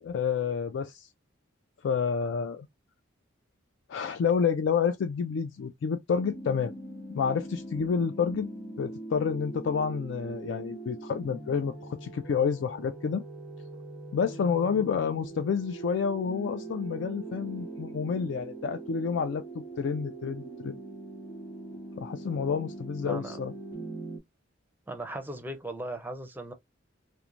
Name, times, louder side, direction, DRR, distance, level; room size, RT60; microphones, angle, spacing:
voice 1, 0.0-1.1 1.8-2.7 3.9-6.7 7.1-8.5 8.8-13.2 14.1-20.8 22.0-23.5, left 6 dB, 65° left, 0.3 m, -29 dB
sound 1, 6.2-24.2, right 2 dB, 15° left, 0.9 m, -42 dB
voice 2, 23.0-23.4 24.9-26.5, right 1 dB, 10° right, 0.5 m, -38 dB
3.0 x 2.1 x 2.4 m
head